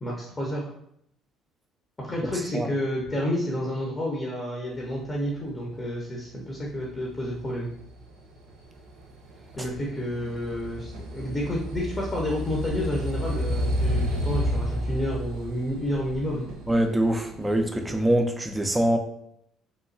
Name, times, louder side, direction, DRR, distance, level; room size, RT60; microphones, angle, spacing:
voice 1, 0.0-0.7 2.0-7.7 9.6-16.5, equal, 20° left, -3 dB, 0.7 m, -30 dB
sound 1, 6.6-17.9, equal, 85° right, 0.5 m, -32 dB
voice 2, 16.7-19.0, right 1 dB, 15° right, 5 dB, 0.4 m, -23 dB
2.9 x 2.2 x 2.5 m, 0.72 s
supercardioid pair, 75°, 0 cm